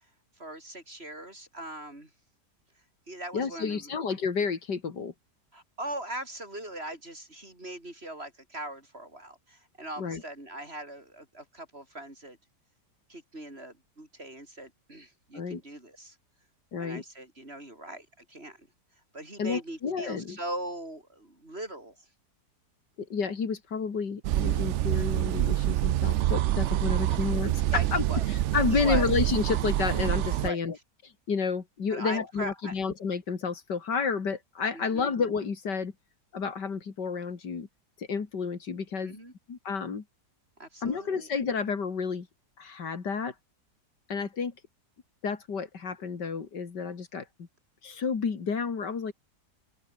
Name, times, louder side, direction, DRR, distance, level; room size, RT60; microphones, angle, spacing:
voice 1, 0.4-2.1 3.1-3.9 5.5-12.4 13.1-16.2 16.8-18.7 19.1-22.0 27.1-27.2 27.7-28.2 28.7-29.1 30.4-30.6 31.9-32.7 34.7-35.1 39.0-39.3 40.6-41.3, right 1 dB, 35° right, 6.8 m, -40 dB
voice 2, 3.3-5.1 10.0-10.2 15.3-15.6 16.7-17.0 19.4-20.4 23.0-27.5 27.9-30.8 31.0-35.9 36.3-37.7 38.0-39.2 39.5-40.0 40.8-42.3 42.6-43.3 44.1-44.5 45.2-47.5 47.8-49.1, left 5 dB, 80° left, 3.0 m, -30 dB
sound 1, 24.2-30.5, right 13 dB, 85° right, 0.6 m, -26 dB
open air
omnidirectional pair, 1.8 m